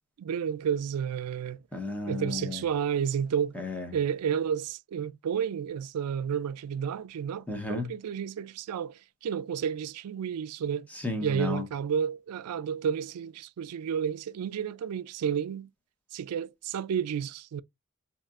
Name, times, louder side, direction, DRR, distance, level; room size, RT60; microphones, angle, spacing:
voice 1, 0.2-1.6 2.1-3.6 3.9-10.9 11.2-15.7 16.1-17.6, right 8 dB, 85° right, 0.3 m, -31 dB
voice 2, 1.7-2.6 3.5-3.9 7.5-7.9 10.9-11.6, left 3 dB, 5° left, 0.8 m, -33 dB
4.0 x 2.9 x 2.4 m
head